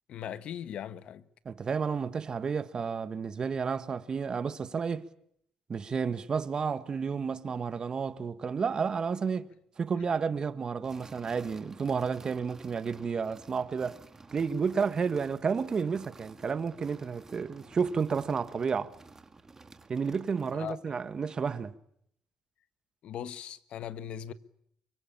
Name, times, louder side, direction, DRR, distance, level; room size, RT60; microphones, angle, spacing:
voice 1, 0.1-1.2 20.5-20.8 23.0-24.3, left 9 dB, 70° left, 1.4 m, -39 dB
voice 2, 1.4-5.1 5.7-9.5 9.8-14.0 14.3-18.9 19.9-21.7, right 5 dB, 40° right, 1.6 m, -31 dB
sound 1, 10.8-20.9, right 3 dB, 25° right, 2.0 m, -53 dB
24.0 x 23.5 x 8.9 m
cardioid pair, 90°, 2 cm